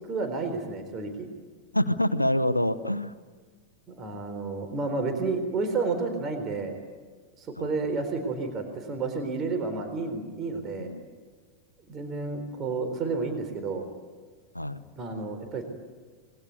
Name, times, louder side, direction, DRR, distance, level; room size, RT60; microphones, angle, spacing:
voice 1, 0.1-1.3 3.9-6.8 7.4-10.9 11.9-13.8 15.0-15.6, right 3 dB, 30° right, 6 dB, 4.0 m, -31 dB
voice 2, 1.7-3.1 7.6-7.8 10.8-11.0 14.5-14.8, left 1 dB, 85° left, 11 dB, 0.9 m, -26 dB
26.5 x 22.0 x 9.4 m, 1.5 s
figure-of-eight pair, 90°, 0 cm